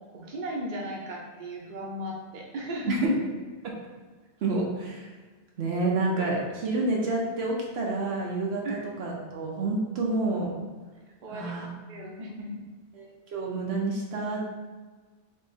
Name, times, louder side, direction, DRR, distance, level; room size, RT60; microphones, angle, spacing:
voice 1, 0.1-3.0 8.6-8.9 11.2-11.6 11.9-12.6, equal, 45° right, -2 dB, 0.8 m, -36 dB
voice 2, 2.9-3.2 3.6-3.7 4.4-5.1 5.6-10.5 11.3-11.7 12.9-14.5, right 2 dB, 70° right, -2 dB, 0.9 m, -28 dB
3.7 x 3.0 x 4.1 m, 1.4 s
omnidirectional pair, 1.1 m